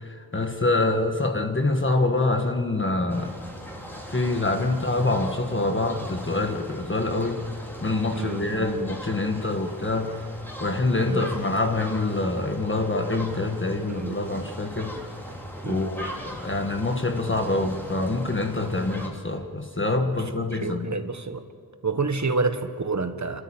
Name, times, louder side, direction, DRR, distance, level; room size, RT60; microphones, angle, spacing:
voice 1, 0.0-3.3 4.1-7.4 7.8-10.2 10.6-15.0 15.6-20.9, left 2 dB, 35° left, 4 dB, 1.5 m, -25 dB
sound 1, 3.1-19.1, equal, 5° left, 3.7 m, -39 dB
voice 2, 8.1-8.6 11.0-11.3 13.9-14.2 15.6-15.9 20.1-21.4 21.8-23.4, right 3 dB, 50° right, 8 dB, 1.4 m, -29 dB
29.0 x 13.0 x 8.9 m, 2.2 s
wide cardioid pair, 80°, 36 cm